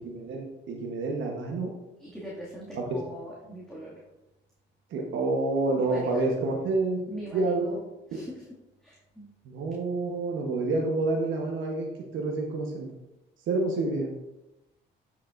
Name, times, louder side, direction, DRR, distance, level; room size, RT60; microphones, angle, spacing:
voice 1, 0.0-1.7 2.7-2.9 4.9-7.8 9.4-12.9 13.5-14.1, right 3 dB, 80° right, 0 dB, 1.1 m, -28 dB
voice 2, 2.0-4.0 5.7-6.2 7.1-7.7 8.1-8.4 8.8-9.3, right 1 dB, 5° left, -8 dB, 2.2 m, -41 dB
8.8 x 7.1 x 2.6 m, 0.96 s
cardioid pair, 90°, 20 cm